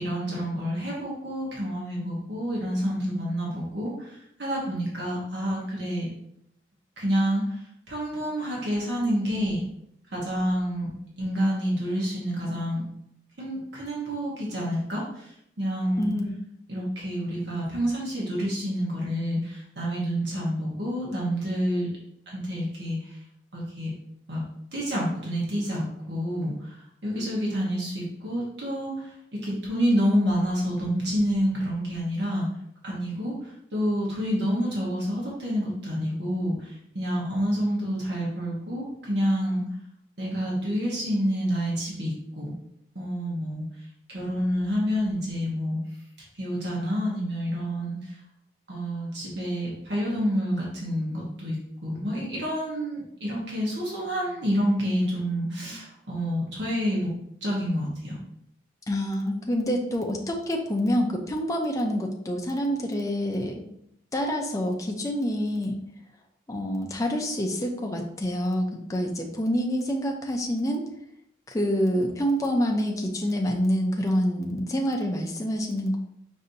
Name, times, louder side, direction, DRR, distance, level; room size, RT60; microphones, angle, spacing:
voice 1, 0.0-6.1 7.0-7.6 7.9-9.6 10.1-10.9 11.2-12.8 13.4-16.1 16.7-21.9 22.3-23.2 23.5-23.9 24.3-24.4 24.7-32.5 32.8-39.7 40.2-42.5 42.9-43.6 44.1-45.8 46.4-48.2 48.7-51.6 51.8-57.1 57.4-58.2, equal, 65° right, -4 dB, 1.1 m, -28 dB
voice 2, 58.9-63.5 64.1-65.8 66.5-70.8 71.5-76.0, equal, 15° left, 1 dB, 0.5 m, -27 dB
5.2 x 2.7 x 2.6 m, 0.75 s
head